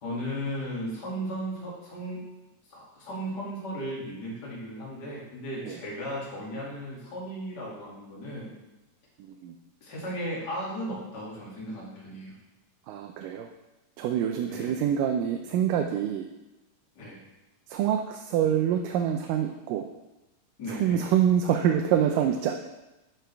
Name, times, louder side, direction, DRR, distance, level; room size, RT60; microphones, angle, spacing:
voice 1, 0.0-2.2 2.7-8.5 9.8-12.3 14.4-14.8 17.0-17.2 20.6-21.0, equal, 35° left, -6 dB, 2.7 m, -36 dB
voice 2, 9.2-9.6 12.9-13.5 14.0-16.3 17.7-19.9 20.6-22.6, right 9 dB, 85° right, 4 dB, 2.2 m, -26 dB
11.5 x 6.0 x 3.4 m, 1.0 s
omnidirectional pair, 3.8 m